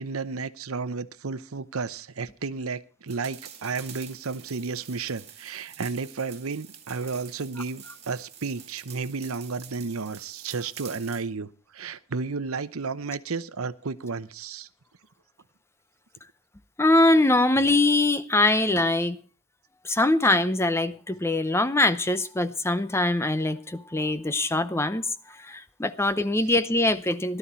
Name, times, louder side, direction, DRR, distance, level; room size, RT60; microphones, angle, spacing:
voice 1, 0.0-14.7, right 4 dB, 80° right, 0.8 m, -32 dB
sound 1, 3.1-11.3, right 9 dB, 30° right, 2.1 m, -47 dB
voice 2, 16.8-19.2 19.8-25.0 25.4-27.4, left 2 dB, 10° left, 0.6 m, -23 dB
16.5 x 12.0 x 4.3 m
head